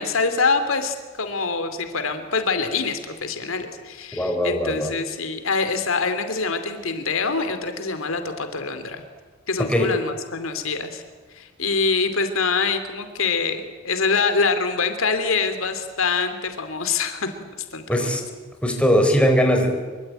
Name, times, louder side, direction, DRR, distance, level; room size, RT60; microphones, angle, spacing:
voice 1, 0.0-9.0 9.5-11.0 11.3-17.3 17.7-18.2, left 4 dB, 85° left, 8 dB, 2.8 m, -25 dB
voice 2, 4.1-4.9 9.6-9.9 17.9-18.2 18.6-19.7, equal, 5° left, 3 dB, 4.2 m, -20 dB
25.0 x 24.0 x 9.0 m, 1.4 s
head